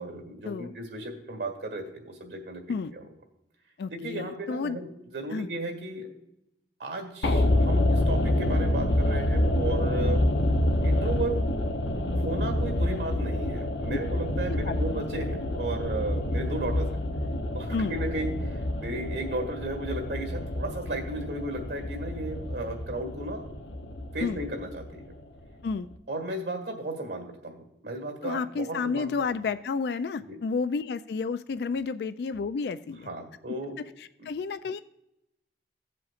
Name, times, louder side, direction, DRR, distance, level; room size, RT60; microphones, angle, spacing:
voice 1, 0.0-2.6 2.9-3.0 3.9-6.1 6.8-10.2 10.8-11.3 12.1-16.9 17.5-23.4 24.1-25.0 26.1-29.1 30.3-30.4 33.1-33.8 34.2-34.3, right 2 dB, 80° right, 3 dB, 1.7 m, -34 dB
voice 2, 3.8-4.8 5.3-5.5 14.5-14.8 17.7-18.0 24.2-24.4 25.6-25.9 28.2-33.1 34.0-34.8, left 4 dB, 70° left, 12 dB, 0.3 m, -31 dB
sound 1, 7.2-25.4 25.7-25.8, left 1 dB, 85° left, 0.8 m, -27 dB
15.5 x 7.6 x 2.5 m, 0.86 s
head